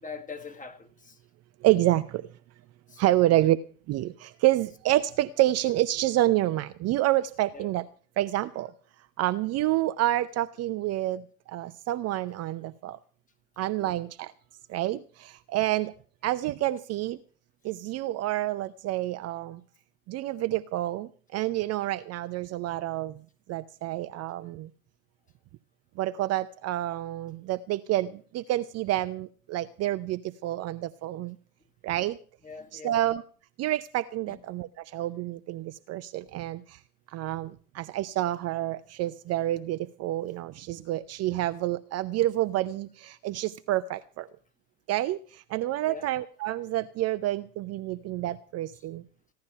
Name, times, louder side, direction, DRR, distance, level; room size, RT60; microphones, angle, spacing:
voice 1, 0.0-1.2 2.9-3.6 7.5-7.7 13.8-14.0 32.4-33.0 34.3-34.4 45.9-46.1, left 5 dB, 15° left, 1.8 m, -43 dB
voice 2, 1.6-2.3 3.0-3.6 3.9-7.9 8.2-8.7 9.2-13.0 13.6-14.3 14.7-15.9 16.2-17.2 17.6-19.6 20.1-23.2 23.5-24.7 26.0-31.4 31.8-32.2 32.7-33.2 33.6-36.8 37.1-44.3 44.9-49.0, right 15 dB, 35° right, 0.6 m, -28 dB
16.5 x 11.5 x 5.6 m
hypercardioid pair, 85°, 46 cm